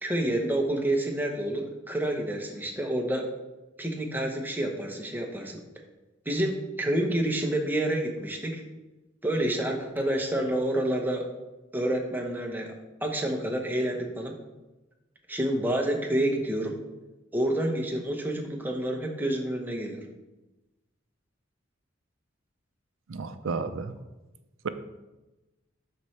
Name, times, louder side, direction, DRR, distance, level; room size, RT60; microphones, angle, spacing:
voice 1, 0.0-3.3 3.8-5.6 6.3-8.6 9.2-11.2 11.7-12.7 13.0-14.3 15.3-16.7 17.3-20.1, right 1 dB, 10° right, 1 dB, 0.9 m, -28 dB
voice 2, 23.1-23.9, right 4 dB, 80° right, 10 dB, 0.5 m, -32 dB
12.0 x 4.3 x 3.2 m, 1.1 s
head